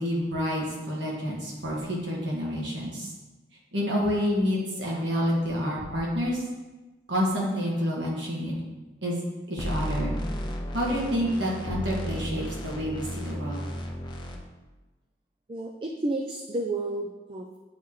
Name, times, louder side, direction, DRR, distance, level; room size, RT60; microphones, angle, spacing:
voice 1, 0.0-3.1 3.7-6.4 7.1-8.5 9.0-9.2 9.5-10.2 10.7-13.6, equal, 85° right, -4 dB, 1.6 m, -28 dB
sound 1, 9.6-14.4, equal, 25° left, 0.6 m, -33 dB
voice 2, 15.5-17.6, right 2 dB, 30° right, 2 dB, 0.4 m, -31 dB
8.5 x 3.0 x 3.7 m, 1.1 s
head